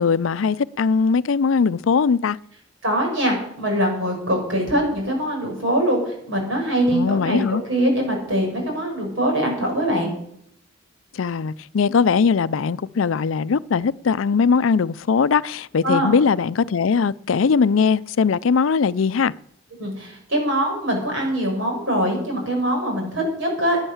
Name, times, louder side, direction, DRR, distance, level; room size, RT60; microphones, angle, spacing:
voice 1, 0.0-2.4 6.9-7.6 11.2-19.3, left 5 dB, 80° left, 0.5 m, -20 dB
voice 2, 2.8-10.1 15.8-16.1 19.8-23.8, equal, 70° right, 6.0 m, -23 dB
15.5 x 9.8 x 7.2 m
head